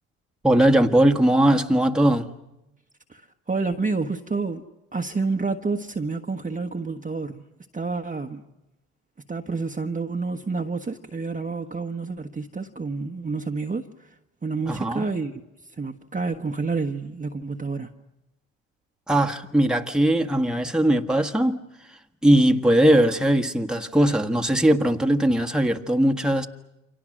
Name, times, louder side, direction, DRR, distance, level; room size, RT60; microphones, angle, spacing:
voice 1, 0.4-2.3 14.7-15.0 19.1-21.6 22.2-26.5, right 1 dB, ahead, 1.6 m, -20 dB
voice 2, 3.5-4.6 4.9-7.4 7.7-8.4 9.3-14.1 14.4-15.4 15.8-17.9, right 4 dB, 20° right, 1.3 m, -29 dB
29.0 x 25.0 x 6.4 m
hypercardioid pair, 65°, 35 cm